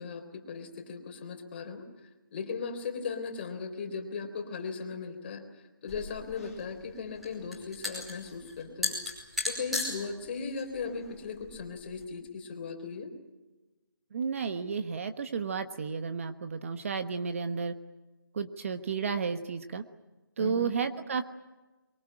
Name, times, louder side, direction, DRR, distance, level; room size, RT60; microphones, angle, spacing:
voice 1, 0.0-1.8 2.3-5.4 5.8-9.0 9.4-13.1 20.4-20.7, left 5 dB, 30° left, 4 dB, 3.9 m, -37 dB
sound 1, 5.9-12.0, left 3 dB, ahead, 5.5 m, -37 dB
voice 2, 14.1-17.8 18.3-19.8 20.4-21.2, right 5 dB, 40° right, 9 dB, 1.2 m, -32 dB
23.5 x 23.0 x 8.9 m, 1.1 s
hypercardioid pair, 165°, 11 cm